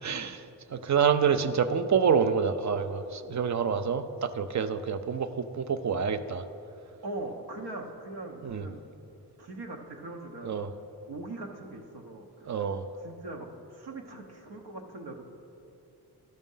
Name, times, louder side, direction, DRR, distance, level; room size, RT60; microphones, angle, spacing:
voice 1, 0.0-6.4 8.4-8.7 10.4-10.7 12.5-12.9, right 6 dB, 45° right, 10 dB, 0.5 m, -27 dB
voice 2, 7.0-8.8 9.4-10.5 11.1-12.6 13.0-15.2, right 2 dB, 75° right, 1 dB, 1.0 m, -41 dB
11.5 x 6.3 x 5.5 m, 2.8 s
wide cardioid pair, 100°, 39 cm